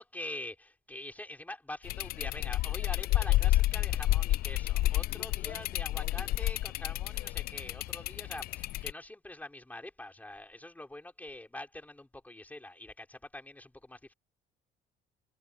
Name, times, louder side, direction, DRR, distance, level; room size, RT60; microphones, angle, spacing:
voice 1, 0.0-14.1, left 1 dB, 10° left, 5.3 m, -45 dB
sound 1, 1.8-8.9, left 16 dB, 60° left, 0.4 m, -30 dB
cardioid pair, 110°, 17 cm